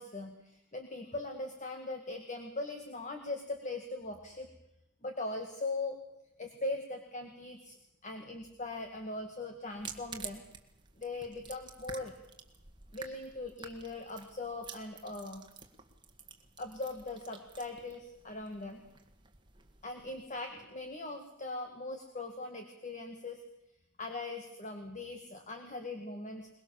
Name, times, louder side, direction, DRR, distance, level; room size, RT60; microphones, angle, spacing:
voice 1, 0.0-4.5 5.0-6.0 6.4-7.8 8.0-10.4 11.0-12.2 12.9-15.5 16.6-18.8 19.8-23.4 24.0-26.5, left 2 dB, 35° left, 5 dB, 2.0 m, -40 dB
sound 1, 9.7-20.4, right 6 dB, 20° right, 1.8 m, -51 dB
22.5 x 21.5 x 7.2 m, 0.83 s
head